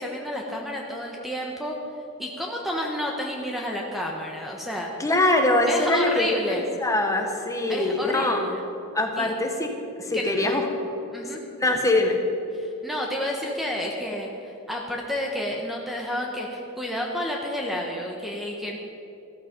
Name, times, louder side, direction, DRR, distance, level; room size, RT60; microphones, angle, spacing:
voice 1, 0.0-1.8 2.2-4.9 5.7-6.7 7.7-8.6 9.2-9.3 10.1-10.6 11.1-11.4 12.5-18.8, left 1 dB, ahead, -1 dB, 1.1 m, -30 dB
voice 2, 5.0-8.4 8.9-10.7 11.6-12.2, left 2 dB, 15° left, 3 dB, 1.3 m, -23 dB
14.5 x 13.5 x 5.2 m, 2.9 s
head